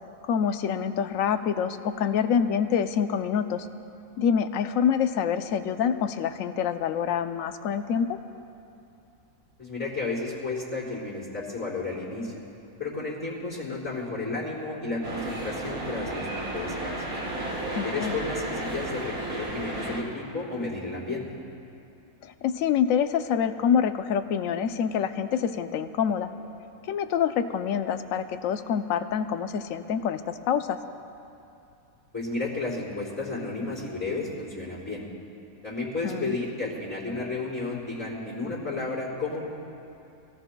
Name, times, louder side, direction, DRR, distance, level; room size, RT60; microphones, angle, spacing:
voice 1, 0.3-3.7 4.2-8.1 17.7-18.1 22.2-26.3 26.8-30.8 36.0-36.4, left 7 dB, 70° left, 8 dB, 1.0 m, -26 dB
voice 2, 9.6-12.3 12.8-17.0 17.8-21.3 32.1-35.0 35.6-39.5, left 3 dB, 10° left, -12 dB, 4.0 m, -32 dB
sound 1, 15.0-20.0, right 2 dB, 70° right, 2.5 m, -33 dB
25.5 x 18.0 x 2.3 m, 2.7 s
omnidirectional pair, 1.5 m